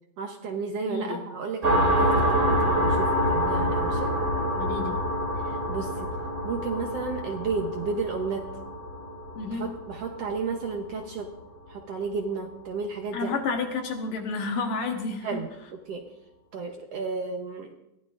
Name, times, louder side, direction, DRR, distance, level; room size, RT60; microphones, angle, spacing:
voice 1, 0.2-4.1 5.4-6.1 6.4-8.4 9.5-11.3 11.7-13.3 15.2-16.1 16.5-17.7, right 4 dB, 80° right, 2 dB, 1.4 m, -32 dB
voice 2, 0.9-1.2 4.6-5.0 9.4-9.7 13.1-15.4, left 4 dB, 70° left, 3 dB, 2.8 m, -30 dB
sound 1, 1.6-10.9, equal, 25° right, 2.5 m, -26 dB
22.5 x 15.5 x 2.5 m, 0.86 s
omnidirectional pair, 4.2 m